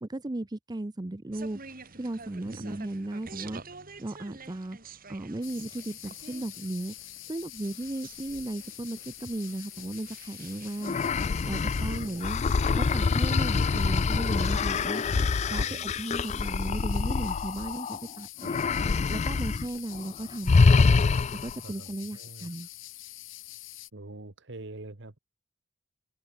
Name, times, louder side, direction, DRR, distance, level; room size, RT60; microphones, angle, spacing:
voice 1, 0.0-1.6 2.0-3.6 4.0-4.8 5.1-6.9 7.3-12.4 12.7-15.0 15.4-20.8 21.4-22.7, right 1 dB, 20° right, 0.6 m, -36 dB
sound 1, 1.3-14.7, right 4 dB, 45° right, 5.5 m, -50 dB
voice 2, 2.4-2.8 11.8-12.3 15.5-15.9 21.6-22.5 23.9-25.2, right 2 dB, 65° right, 1.5 m, -44 dB
sound 2, 5.4-23.9, left 16 dB, 75° left, 2.4 m, -45 dB
sound 3, 10.8-18.0 18.4-19.7 19.9-20.1 20.5-21.6, left 4 dB, 35° left, 0.4 m, -25 dB
open air
head